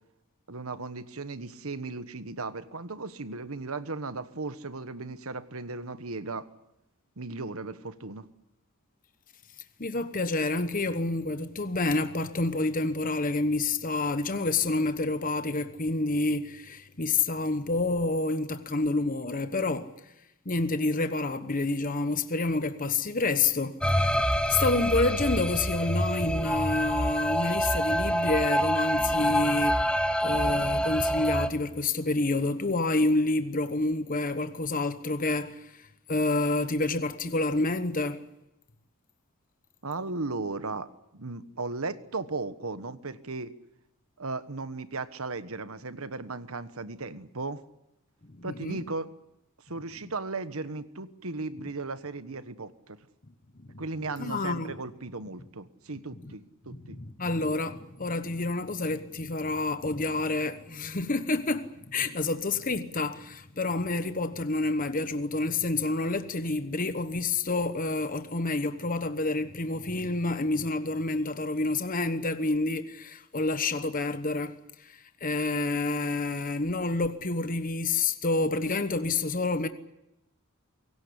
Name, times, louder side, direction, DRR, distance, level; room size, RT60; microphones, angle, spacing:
voice 1, 0.5-6.5 7.2-8.3 39.8-43.5 44.2-47.6 48.4-49.1 49.6-53.0 53.8-57.0, right 3 dB, 75° right, 1.4 m, -36 dB
voice 2, 9.8-19.9 20.4-23.8 24.1-29.9 30.2-38.2 48.4-48.8 53.7-53.8 54.2-54.7 56.9-79.7, left 2 dB, 40° left, 1.1 m, -28 dB
sound 1, 23.8-31.5, equal, 5° left, 1.2 m, -26 dB
24.0 x 17.0 x 9.9 m
head